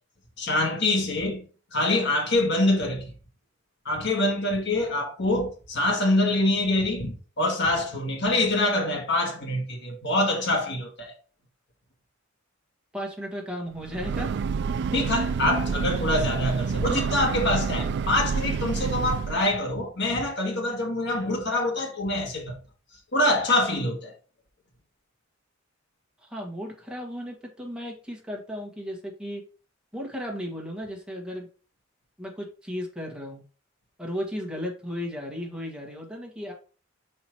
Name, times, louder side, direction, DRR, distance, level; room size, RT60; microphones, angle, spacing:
voice 1, 0.4-1.5 1.7-3.1 3.9-11.1 14.9-22.6 23.1-24.1, left 1 dB, 60° left, 2.0 m, -25 dB
voice 2, 12.9-14.4 26.2-29.4 29.9-31.5 32.2-33.4 34.0-36.5, equal, 5° right, 1.8 m, -35 dB
Breathing / Train, 13.8-19.5, right 5 dB, 55° right, 0.3 m, -28 dB
5.6 x 4.5 x 4.6 m
head